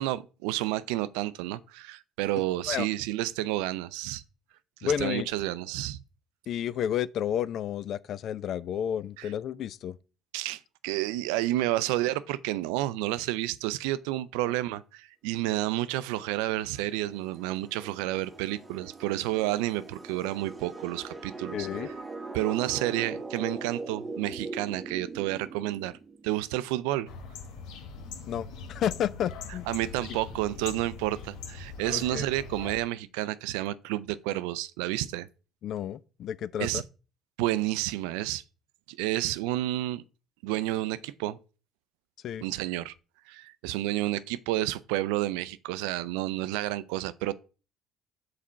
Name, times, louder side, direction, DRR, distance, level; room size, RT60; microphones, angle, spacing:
voice 1, 0.0-4.2 4.8-6.0 9.2-9.3 10.3-21.7 22.3-25.9 26.2-27.1 29.7-35.3 36.6-36.8 37.4-38.4 38.9-40.0 40.4-41.4 42.4-42.9 43.3-47.3, right 15 dB, 85° right, 0.4 m, -30 dB
voice 2, 4.8-5.3 6.5-10.0 14.5-14.6 21.5-21.9 28.3-29.7 31.9-32.3 35.6-36.8 42.2-42.4, left 9 dB, 60° left, 0.4 m, -31 dB
sound 1, 15.9-26.4, right 3 dB, 25° right, 0.9 m, -41 dB
sound 2, 27.1-32.8, left 5 dB, 80° left, 1.1 m, -42 dB
5.1 x 4.1 x 5.6 m
supercardioid pair, 80°, 0 cm